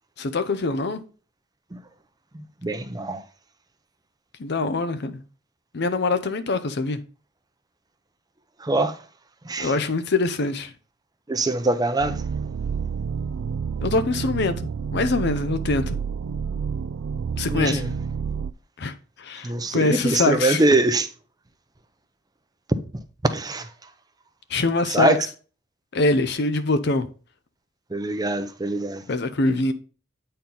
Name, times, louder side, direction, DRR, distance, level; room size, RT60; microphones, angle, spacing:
voice 1, 0.2-1.0 4.4-5.2 5.7-7.0 9.6-10.7 13.8-16.0 17.4-17.8 18.8-20.6 24.5-25.2 25.9-27.1 29.1-29.7, left 3 dB, 55° left, 0.6 m, -24 dB
voice 2, 2.3-3.3 8.6-9.0 9.4-9.7 11.3-12.2 17.5-17.9 19.4-21.1 23.2-23.9 24.9-25.3 27.9-29.1, right 2 dB, 20° right, 0.6 m, -23 dB
sound 1, 12.0-18.5, right 6 dB, 85° right, 0.4 m, -29 dB
8.3 x 4.4 x 3.8 m
head